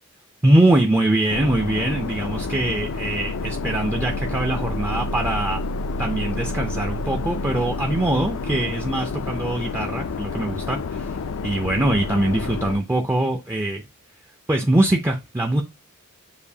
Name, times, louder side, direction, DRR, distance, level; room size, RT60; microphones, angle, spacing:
voice 1, 0.4-5.6 6.0-13.8 14.5-15.6, right 1 dB, 10° right, 0.4 m, -22 dB
sound 1, 1.3-12.8, left 3 dB, 70° left, 0.4 m, -29 dB
6.8 x 2.6 x 2.7 m
head